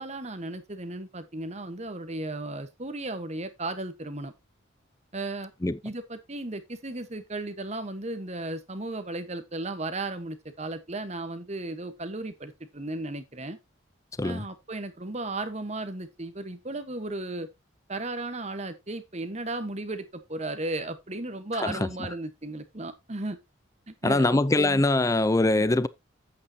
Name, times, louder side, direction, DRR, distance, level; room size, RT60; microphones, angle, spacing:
voice 1, 0.0-4.3 5.1-5.5 5.8-13.6 14.2-17.5 17.9-23.4 23.9-24.8, right 2 dB, 35° right, 1.2 m, -35 dB
voice 2, 24.0-25.9, left 2 dB, 15° left, 0.4 m, -23 dB
9.6 x 8.5 x 2.8 m
head